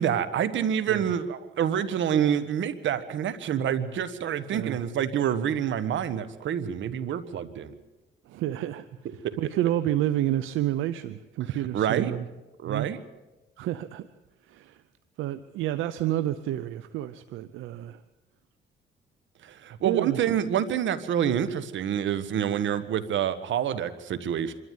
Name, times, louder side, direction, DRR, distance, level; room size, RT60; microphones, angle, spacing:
voice 1, 0.0-7.8 9.2-9.4 11.7-12.1 12.6-13.0 19.4-24.5, right 9 dB, 70° right, 13 dB, 1.6 m, -27 dB
voice 2, 4.5-4.8 8.3-12.3 12.6-12.9 13.6-14.1 14.4-14.8 15.2-18.0 19.8-20.2, right 13 dB, 90° right, 12 dB, 0.7 m, -30 dB
25.5 x 13.0 x 9.5 m, 1.1 s
cardioid pair, 90°, 20 cm